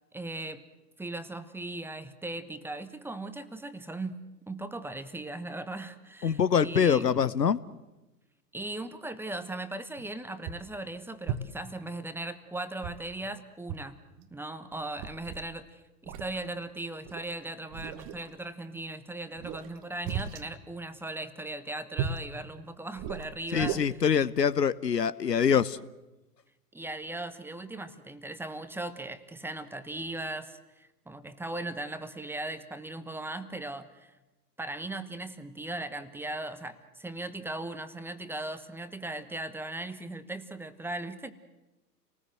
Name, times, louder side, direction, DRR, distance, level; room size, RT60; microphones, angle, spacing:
voice 1, 0.1-0.6 1.0-7.1 8.5-14.0 14.3-24.0 26.7-34.1 34.6-41.3, right 2 dB, 5° right, 1.2 m, -38 dB
voice 2, 6.2-7.6 23.5-25.8, left 7 dB, 85° left, 1.0 m, -24 dB
sound 1, 10.0-10.1 10.5-10.8 11.3-11.7 12.8-13.3 13.7-13.9 14.2-14.3 14.7-15.5 16.1-16.4 17.1-17.3 17.7-18.3 19.4-20.5 22.0-22.3 23.0-23.8, right 8 dB, 35° right, 1.5 m, -36 dB
29.5 x 19.5 x 7.7 m
figure-of-eight pair, 110°, 48 cm